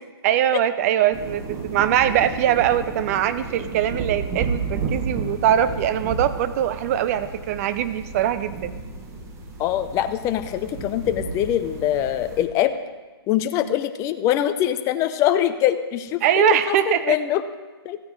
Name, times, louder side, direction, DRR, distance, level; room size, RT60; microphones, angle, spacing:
voice 1, 0.2-8.7 16.2-17.1, right 11 dB, 35° right, 13 dB, 0.5 m, -22 dB
sound 1, 1.1-12.4, right 4 dB, 20° right, 1.3 m, -32 dB
voice 2, 9.6-12.8 13.3-17.4 17.8-18.0, left 11 dB, 25° left, 10 dB, 0.5 m, -23 dB
14.5 x 9.3 x 3.8 m, 1.2 s
hypercardioid pair, 140°, 13 cm